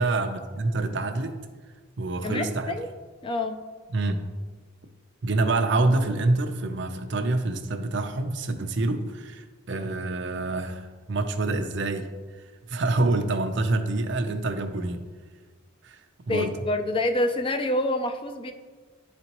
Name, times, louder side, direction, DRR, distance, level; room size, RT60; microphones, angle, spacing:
voice 1, 0.0-1.4 2.0-2.8 3.9-4.2 5.2-12.1 12.7-15.0 15.8-16.0 16.3-16.5, right 2 dB, 55° right, 7 dB, 0.6 m, -26 dB
voice 2, 2.2-2.9 3.2-3.6 16.3-18.5, left 1 dB, 25° left, 7 dB, 0.3 m, -27 dB
11.0 x 4.2 x 3.0 m, 1.4 s
head